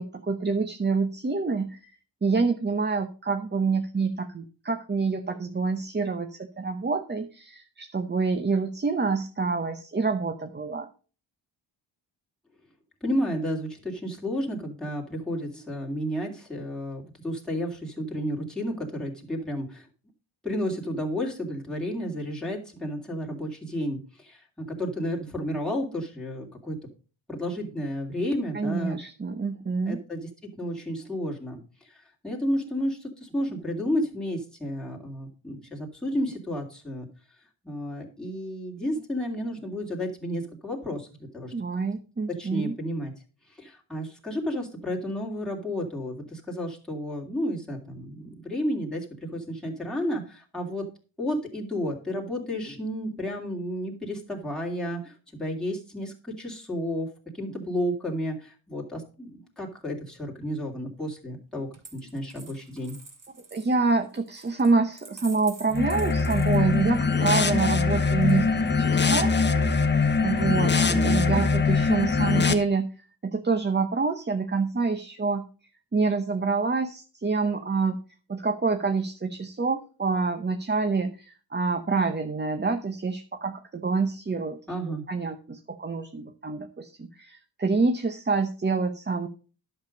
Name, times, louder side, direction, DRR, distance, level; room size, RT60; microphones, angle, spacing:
voice 1, 0.0-1.9 2.2-10.9 28.5-30.0 41.5-42.8 63.5-69.3 70.2-72.9 73.2-75.4 75.9-78.0 78.3-84.6 84.9-89.3, right 4 dB, 25° right, 7 dB, 0.8 m, -27 dB
voice 2, 13.0-19.9 20.4-26.7 27.3-29.0 29.9-31.6 31.9-37.1 37.6-41.5 42.4-43.1 43.6-50.8 51.2-63.0 70.9-71.4 84.7-85.0, equal, ahead, -2 dB, 2.6 m, -32 dB
Coin (dropping), 61.7-67.1 68.2-68.9, right 3 dB, 45° right, 2.9 m, -48 dB
sound 1, 65.7-72.5, left 4 dB, 25° left, 1.0 m, -22 dB
11.0 x 6.9 x 5.2 m, 0.37 s
wide cardioid pair, 125°, 46 cm